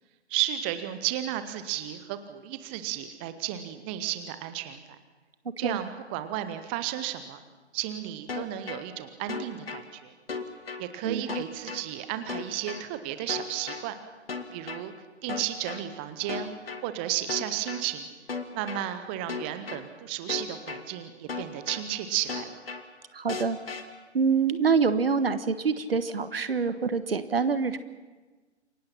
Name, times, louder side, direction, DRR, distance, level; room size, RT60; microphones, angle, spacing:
voice 1, 0.3-4.8 5.6-7.4 7.7-10.1 10.8-13.9 14.5-14.9 15.2-18.1 18.5-22.6, right 12 dB, 10° right, 10 dB, 0.6 m, -33 dB
sound 1, 8.3-8.8 9.3-9.8 10.3-10.8 11.3-11.8 12.3-12.8 13.3-13.8 14.3-14.8 15.3-15.8 16.3-16.8 17.3-17.8 18.3-18.8 19.3-19.8 20.3-20.8 21.3-21.8 22.3-22.8 23.3-23.8, left 5 dB, 55° left, 2.3 m, -35 dB
voice 2, 23.1-23.6 24.1-27.8, right 5 dB, 55° right, 12 dB, 1.4 m, -25 dB
28.0 x 23.5 x 5.8 m, 1.3 s
figure-of-eight pair, 135°, 34 cm